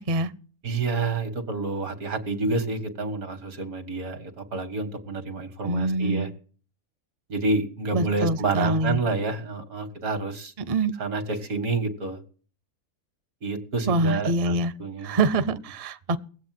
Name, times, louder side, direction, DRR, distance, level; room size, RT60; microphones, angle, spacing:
voice 1, 0.6-6.3 7.3-10.5 11.0-12.2 13.4-14.5 14.8-15.3, right 3 dB, 85° right, 2.2 m, -28 dB
voice 2, 5.6-6.3 7.9-9.0 10.7-10.9 13.9-14.7 15.0-16.2, right 2 dB, 35° right, 0.5 m, -24 dB
19.0 x 7.9 x 7.7 m
omnidirectional pair, 1.5 m